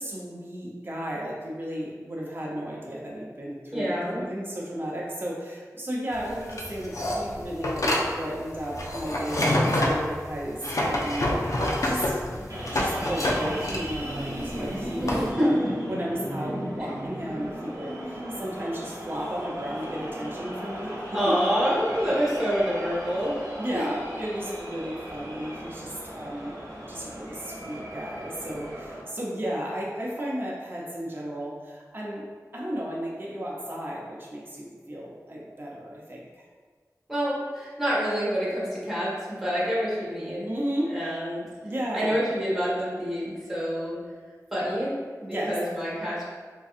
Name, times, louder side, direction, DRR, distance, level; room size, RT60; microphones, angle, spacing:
voice 1, 0.0-15.5 15.8-21.0 23.6-26.6 26.9-32.2 32.5-36.4 40.5-41.0 41.6-42.2 45.2-45.5, equal, 35° right, -4 dB, 0.7 m, -34 dB
voice 2, 3.7-4.2 15.0-15.7 21.1-23.3 23.7-23.9 37.1-40.5 40.9-41.4 41.9-44.0 44.5-44.9 45.4-46.2, equal, 5° right, -8 dB, 1.2 m, -27 dB
sound 1, 6.1-15.3, left 1 dB, 60° left, 0.5 m, -27 dB
sound 2, 12.5-29.0, equal, 65° right, 1.0 m, -36 dB
3.8 x 2.6 x 2.4 m, 1.5 s
wide cardioid pair, 55°, 6 cm